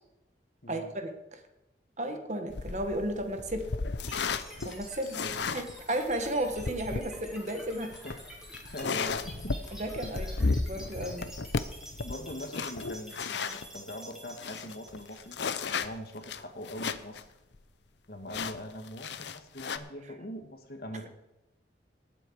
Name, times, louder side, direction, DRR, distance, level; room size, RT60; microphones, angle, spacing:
voice 1, 0.7-1.4 2.0-3.7 4.6-5.2 5.5-7.9 9.8-11.3, right 1 dB, 40° right, 6 dB, 1.5 m, -34 dB
sound 1, 2.5-13.7 14.1-14.2 14.4-17.2 17.5-17.6 18.3-19.8, left 4 dB, 70° left, 0.7 m, -34 dB
sound 2, 4.0-16.1, equal, 5° right, 3.4 m, -48 dB
voice 2, 8.6-9.6 10.1-10.4 12.0-15.4 15.7-17.2 18.1-21.1, left 1 dB, 55° left, 5 dB, 1.9 m, -42 dB
18.5 x 8.2 x 4.8 m, 0.98 s
head